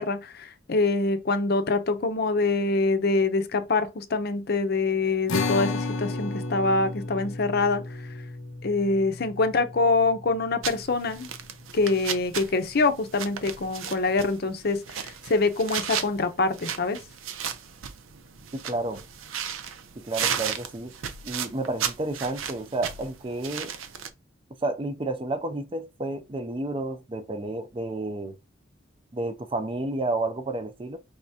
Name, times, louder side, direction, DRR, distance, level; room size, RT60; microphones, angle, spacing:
voice 1, 0.0-8.1 8.6-11.3 11.7-17.0, left 3 dB, 50° left, 0.6 m, -25 dB
sound 1, 5.3-11.9, left 3 dB, 90° left, 0.7 m, -33 dB
sound 2, 10.6-24.1, right 8 dB, 90° right, 0.6 m, -35 dB
voice 2, 18.5-19.0 20.0-20.9 21.2-23.7 24.6-28.4 29.1-31.0, right 2 dB, 25° right, 0.5 m, -31 dB
5.2 x 3.4 x 2.7 m
head